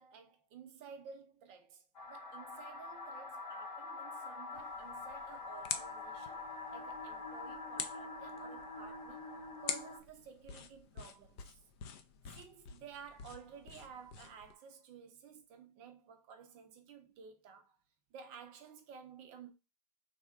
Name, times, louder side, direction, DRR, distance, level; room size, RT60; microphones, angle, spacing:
voice 1, 0.0-1.8 2.1-6.4 6.7-9.3 9.6-11.6 12.3-17.7 18.1-19.5, right 6 dB, 30° right, 0.6 m, -54 dB
sound 1, 1.9-10.0, left 3 dB, 85° left, 1.1 m, -45 dB
sound 2, 4.5-14.5, left 7 dB, 40° left, 0.5 m, -47 dB
3.4 x 2.2 x 3.5 m
hypercardioid pair, 125°, 21 cm